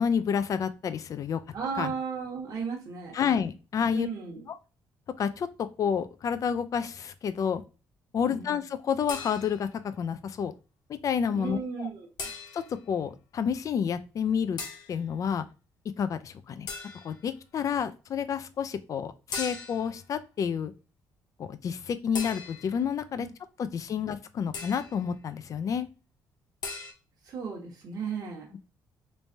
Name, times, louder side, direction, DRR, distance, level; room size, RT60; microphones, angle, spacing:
voice 1, 0.0-1.4 1.8-1.9 3.1-4.1 5.2-7.6 8.1-9.7 10.0-10.5 10.9-11.9 12.5-14.6 14.9-15.5 16.0-16.7 17.0-20.7 21.4-23.3 23.6-25.9, left 7 dB, 50° left, 12 dB, 0.4 m, -29 dB
voice 2, 1.5-3.1 3.9-4.4 8.2-8.6 11.3-12.1 27.2-28.5, right 5 dB, 55° right, -3 dB, 1.1 m, -35 dB
sound 1, 9.1-9.8 12.2-12.8 14.6-15.0 16.7-17.2 19.3-20.0 22.1-22.9 24.5-25.0 26.6-26.9, left 4 dB, 70° left, 0.8 m, -38 dB
3.2 x 3.1 x 2.7 m, 0.33 s
cardioid pair, 90°, 7 cm